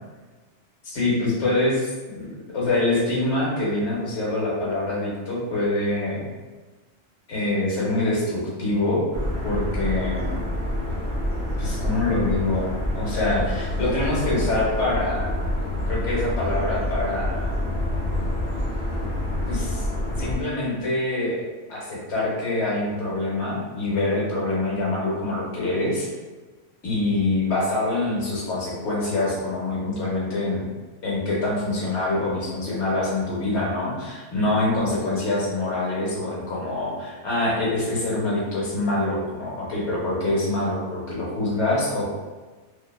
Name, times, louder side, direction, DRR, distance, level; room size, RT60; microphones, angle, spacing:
voice 1, 0.8-6.3 7.3-9.1 9.4-10.4 11.6-15.4 15.9-17.5 19.0-19.1 19.5-19.9 20.2-21.4 21.7-26.1 26.8-30.7 31.0-42.1, left 2 dB, 65° left, -5 dB, 1.0 m, -25 dB
sound 1, 9.1-20.4, left 1 dB, 55° right, 0.5 m, -27 dB
2.6 x 2.0 x 2.3 m, 1.3 s
omnidirectional pair, 1.3 m